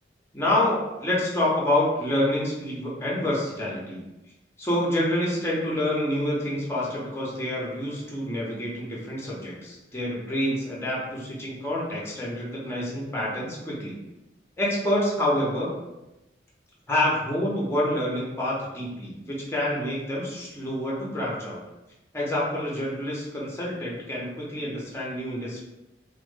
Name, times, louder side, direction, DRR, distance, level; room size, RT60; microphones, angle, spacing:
voice 1, 0.3-4.0 4.6-14.0 14.6-15.8 16.9-21.6 22.1-25.6, left 1 dB, 15° left, -5 dB, 0.5 m, -27 dB
2.1 x 2.0 x 3.1 m, 0.99 s
head